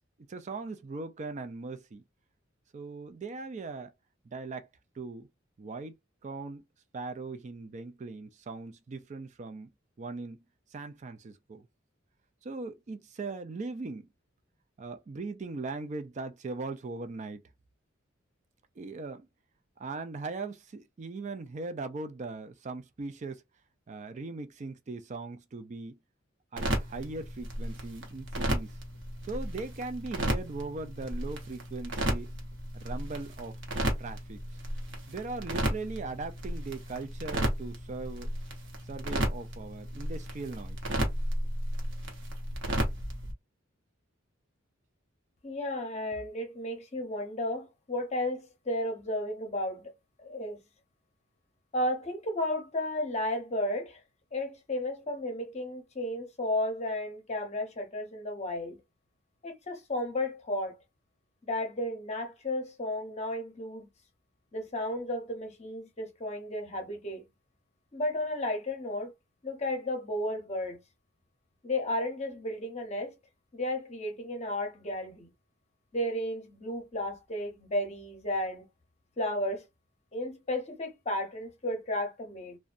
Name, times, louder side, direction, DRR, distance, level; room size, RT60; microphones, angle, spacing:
voice 1, 0.3-2.0 2.7-3.9 4.2-4.7 5.0-5.3 5.6-5.9 6.2-6.6 6.9-9.7 10.0-10.5 10.7-11.7 12.4-14.1 14.8-17.4 18.8-19.3 19.8-23.4 23.9-26.0 26.5-28.8 29.2-32.3 32.7-33.6 34.0-34.6 35.1-38.3 38.9-40.8, right 3 dB, 35° right, 0.4 m, -39 dB
sound 1, 26.6-43.3, equal, 65° right, 0.8 m, -34 dB
voice 2, 45.4-49.9 50.2-50.6 51.7-54.0 54.3-58.8 59.4-60.8 61.4-63.9 64.5-67.2 67.9-69.1 69.4-70.8 71.6-73.1 73.5-75.3 75.9-78.7 79.2-79.6 80.1-82.6, left 1 dB, 35° left, 0.7 m, -33 dB
2.6 x 2.2 x 2.4 m
head